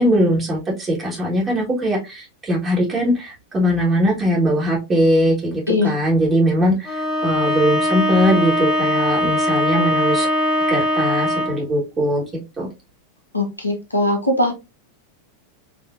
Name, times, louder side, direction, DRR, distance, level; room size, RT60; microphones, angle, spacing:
voice 1, 0.0-10.3 10.7-12.2 12.6-12.7, equal, 20° right, -4 dB, 1.3 m, -20 dB
Bowed string instrument, 6.8-11.7, left 1 dB, 30° left, 1.0 m, -20 dB
voice 2, 13.3-14.5, left 2 dB, 85° left, 4 dB, 0.8 m, -20 dB
4.8 x 2.6 x 2.4 m, 0.26 s
figure-of-eight pair, 90°, 0 cm